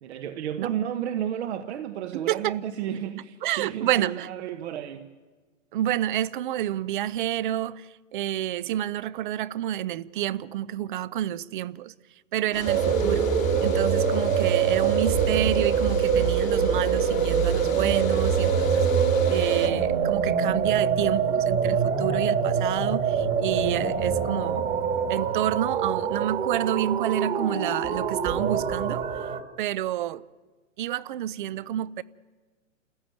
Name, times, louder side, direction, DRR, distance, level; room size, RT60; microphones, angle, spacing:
voice 1, 0.0-5.1, right 10 dB, 55° right, 1.2 m, -32 dB
voice 2, 2.3-2.6 3.4-4.3 5.7-11.9 12.3-13.3 13.6-18.9 19.3-24.7 25.1-29.0 29.6-30.2 30.8-32.0, right 12 dB, 40° right, 0.6 m, -29 dB
sound 1, 12.5-19.7, left 7 dB, 80° left, 2.2 m, -37 dB
sound 2, 12.7-29.4, right 7 dB, 20° right, 1.6 m, -24 dB
27.5 x 15.0 x 9.2 m
hypercardioid pair, 145°, 39 cm